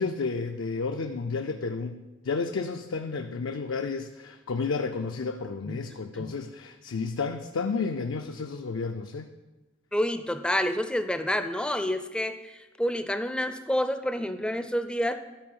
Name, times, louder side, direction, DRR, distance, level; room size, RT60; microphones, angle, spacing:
voice 1, 0.0-9.3, left 4 dB, 70° left, 6 dB, 0.4 m, -31 dB
voice 2, 9.9-15.1, left 1 dB, 5° left, 9 dB, 0.4 m, -28 dB
11.5 x 4.3 x 5.5 m, 1.1 s
head